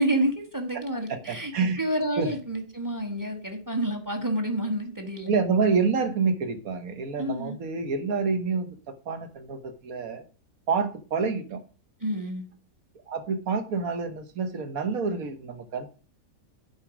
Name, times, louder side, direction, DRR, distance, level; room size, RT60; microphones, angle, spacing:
voice 1, 0.0-1.5 1.8-5.3 7.2-7.5 12.0-12.4, right 1 dB, 15° right, 6 dB, 1.1 m, -28 dB
voice 2, 1.1-1.8 2.2-2.3 5.3-10.2 10.7-11.6 13.1-15.9, right 5 dB, 75° right, 8 dB, 1.6 m, -28 dB
9.4 x 4.7 x 5.0 m, 0.36 s
omnidirectional pair, 1.5 m